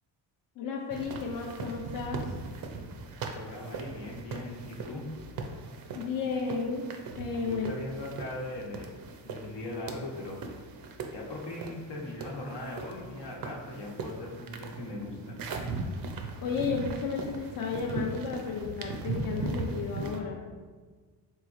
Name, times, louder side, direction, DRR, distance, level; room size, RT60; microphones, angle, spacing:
voice 1, 0.6-2.2 5.9-6.8 7.2-7.7 16.4-20.4, left 5 dB, 50° left, -1 dB, 0.5 m, -33 dB
sound 1, 0.9-20.2, right 3 dB, 55° right, 0.5 m, -39 dB
voice 2, 3.1-5.0 7.4-8.9 9.2-10.4 11.1-15.4, left 1 dB, 70° left, -1 dB, 0.9 m, -39 dB
3.8 x 3.1 x 2.5 m, 1.5 s
cardioid pair, 110°, 44 cm